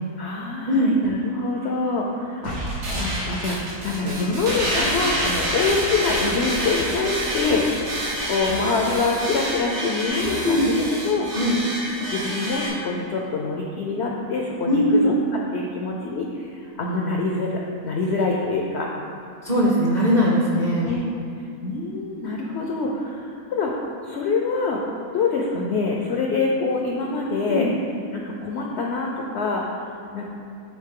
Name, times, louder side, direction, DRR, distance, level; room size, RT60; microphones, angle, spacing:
voice 1, 0.2-11.3 12.1-15.1 15.5-18.9 19.9-20.3 20.8-21.0 21.6-24.8 25.1-27.7 28.1-29.8 30.1-30.2, left 3 dB, 70° left, -1 dB, 0.6 m, -25 dB
sound 1, 2.4-12.7, right 1 dB, 85° right, 1.9 m, -27 dB
voice 2, 14.6-15.1 19.4-20.9 27.5-27.7, equal, 40° right, -5 dB, 0.6 m, -20 dB
9.3 x 3.7 x 3.7 m, 2.5 s
omnidirectional pair, 1.7 m